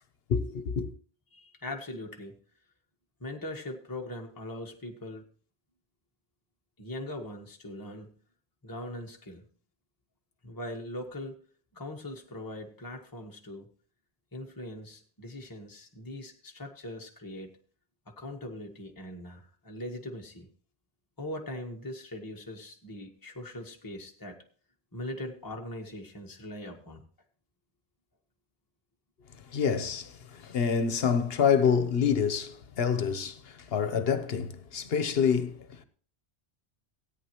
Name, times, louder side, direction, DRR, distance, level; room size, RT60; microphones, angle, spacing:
voice 1, 0.3-0.9 29.5-35.8, left 7 dB, 70° left, 1.1 m, -27 dB
voice 2, 1.3-2.4 3.2-5.2 6.8-8.1 8.6-9.4 10.4-11.4 11.7-13.7 14.3-17.5 18.1-20.5 21.2-24.4 24.9-27.0, left 1 dB, 20° left, 1.3 m, -41 dB
17.5 x 9.3 x 3.0 m
omnidirectional pair, 1.1 m